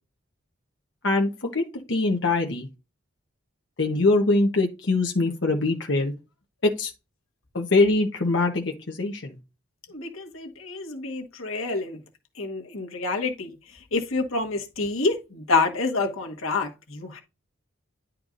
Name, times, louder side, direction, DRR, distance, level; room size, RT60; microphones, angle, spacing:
voice 1, 1.0-2.7 3.8-6.1 6.6-6.9 7.5-9.4, left 2 dB, 60° left, 1.1 m, -23 dB
voice 2, 9.9-12.0 12.4-13.5 13.9-17.2, left 3 dB, 80° left, 1.5 m, -27 dB
10.5 x 4.5 x 2.5 m
head